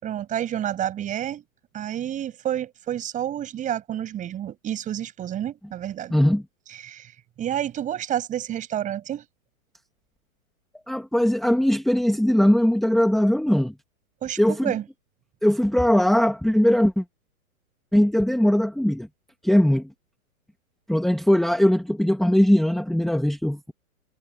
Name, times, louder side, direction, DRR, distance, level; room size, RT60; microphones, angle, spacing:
voice 1, 0.0-1.4 1.7-6.1 6.8-7.1 7.4-9.2 14.2-14.8, right 11 dB, 15° right, 7.0 m, -29 dB
voice 2, 6.1-6.4 10.9-13.7 14.4-14.7 15.4-17.0 17.9-19.1 19.4-19.9 20.9-23.7, equal, ahead, 1.5 m, -20 dB
hypercardioid pair, 155°, 44 cm